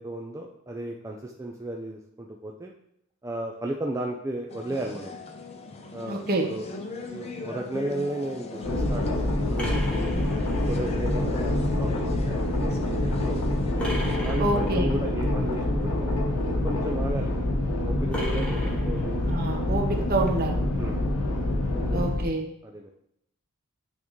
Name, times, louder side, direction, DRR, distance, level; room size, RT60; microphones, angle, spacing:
voice 1, 0.0-2.7 3.2-5.1 5.9-6.7 7.0-10.3 10.6-11.9 12.2-13.7 14.2-16.2 16.6-17.3 17.8-19.5 20.8-21.0 21.8-22.2 22.6-22.9, right 1 dB, 15° right, 0 dB, 0.4 m, -35 dB
sound 1, 4.5-14.2, left 3 dB, 30° left, 0.6 m, -39 dB
voice 2, 6.1-6.4 14.4-14.9 19.3-20.6 21.9-22.4, right 2 dB, 45° right, 2 dB, 0.9 m, -27 dB
sound 2, 8.6-22.3, left 1 dB, 80° left, 0.9 m, -26 dB
sound 3, 9.6-11.0 13.8-14.9 18.1-19.4, equal, 5° left, 1.1 m, -35 dB
8.5 x 3.6 x 3.1 m, 0.76 s
head